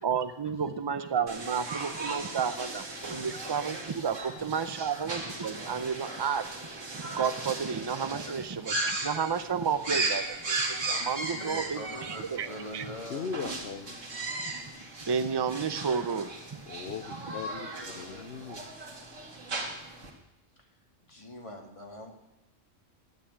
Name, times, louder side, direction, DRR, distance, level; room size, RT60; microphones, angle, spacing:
voice 1, 0.0-2.8 3.1-6.5 6.9-12.5 12.7-12.9 15.0-16.6 17.1-17.2, right 6 dB, 25° right, 10 dB, 0.6 m, -31 dB
sound 1, 1.3-20.1, right 2 dB, 75° right, 2.4 m, -37 dB
voice 2, 11.3-13.3 17.6-18.6 20.6-20.7 21.0-22.1, left 1 dB, 25° left, 1 dB, 2.1 m, -43 dB
voice 3, 13.1-14.0 16.7-18.6, left 6 dB, 55° left, 8 dB, 0.9 m, -39 dB
12.0 x 9.2 x 8.7 m, 0.93 s
omnidirectional pair, 1.3 m